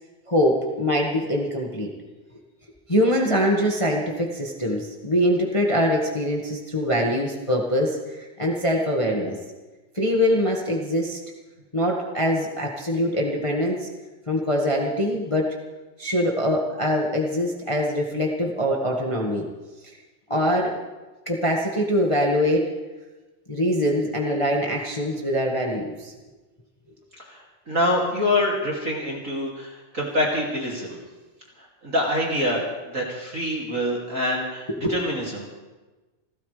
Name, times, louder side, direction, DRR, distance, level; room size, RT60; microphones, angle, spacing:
voice 1, 0.3-1.9 2.9-9.4 9.9-11.2 11.7-13.9 14.3-15.6 16.0-19.5 20.3-20.7 21.2-22.7 23.5-26.1 34.7-34.9, equal, 35° left, -1 dB, 0.5 m, -23 dB
voice 2, 27.3-31.0 31.8-32.6 32.9-35.5, left 1 dB, 25° right, -3 dB, 2.4 m, -25 dB
29.0 x 13.0 x 3.4 m, 1.2 s
omnidirectional pair, 3.7 m